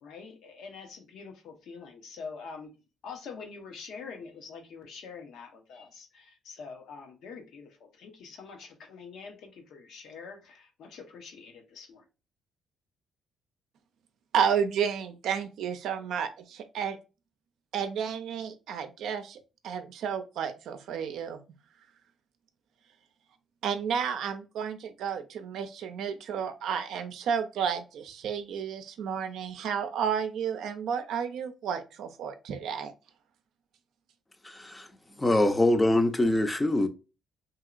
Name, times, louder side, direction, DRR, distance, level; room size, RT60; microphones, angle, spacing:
voice 1, 0.0-2.7 3.0-12.0, left 5 dB, 80° left, 0.8 m, -45 dB
voice 2, 14.3-17.0 17.7-19.4 19.6-21.4 23.6-32.9, right 7 dB, 80° right, 0.5 m, -31 dB
voice 3, 34.4-34.9 35.2-36.9, left 1 dB, 15° left, 0.5 m, -24 dB
2.8 x 2.8 x 2.4 m
cardioid pair, 90°, 0 cm